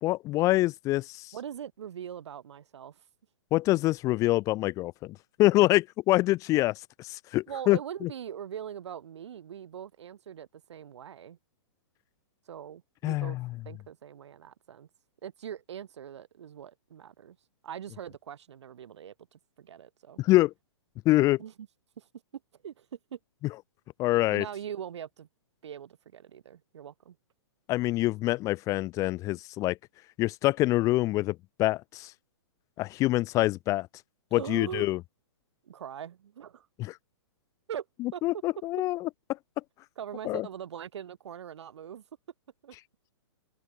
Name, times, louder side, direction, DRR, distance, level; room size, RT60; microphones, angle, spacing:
voice 1, 0.0-1.3 3.5-8.1 13.0-13.5 20.2-20.5 21.0-21.4 24.0-24.4 27.7-29.8 30.2-32.1 32.8-33.9 34.3-35.0 36.8-37.0 38.0-39.1 40.2-40.5, left 18 dB, 20° left, 0.8 m, -26 dB
voice 2, 1.3-3.0 7.5-11.4 12.5-13.4 13.7-14.9 15.2-17.4 17.6-20.2 21.4-21.7 22.0-22.1 22.6-22.9 23.1-23.2 24.3-25.3 25.6-27.2 34.3-34.9 35.6-36.7 37.7-37.9 38.1-38.2 40.0-42.0 42.6-42.7, right 9 dB, 70° right, 7.2 m, -41 dB
open air
hypercardioid pair, 155°, 15 cm